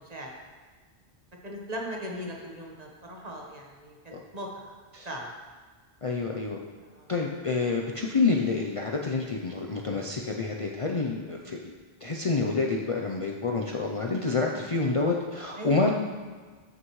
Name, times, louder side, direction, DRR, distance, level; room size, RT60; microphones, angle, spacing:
voice 1, 1.4-4.8 5.0-5.3 6.8-7.1 11.1-11.2 15.6-15.9, equal, 40° right, -1 dB, 1.4 m, -39 dB
voice 2, 6.0-6.6 7.1-11.6 12.0-15.9, left 3 dB, 40° left, 0 dB, 0.6 m, -28 dB
13.0 x 6.2 x 3.2 m, 1.5 s
omnidirectional pair, 1.1 m